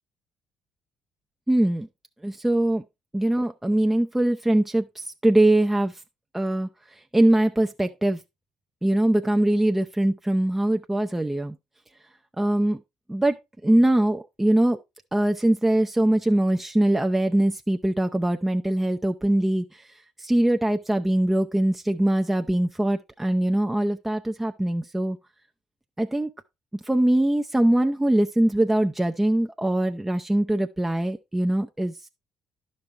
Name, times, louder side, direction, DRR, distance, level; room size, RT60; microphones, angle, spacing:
voice 1, 1.5-1.9 2.2-2.8 3.1-5.9 6.3-6.7 7.1-8.2 8.8-11.5 12.4-12.8 13.1-13.3 13.6-14.8 15.1-19.6 20.2-25.2 26.0-26.3 26.9-31.9, right 1 dB, 10° right, 0.5 m, -22 dB
11.5 x 5.3 x 3.1 m
hypercardioid pair, 55°, 2 cm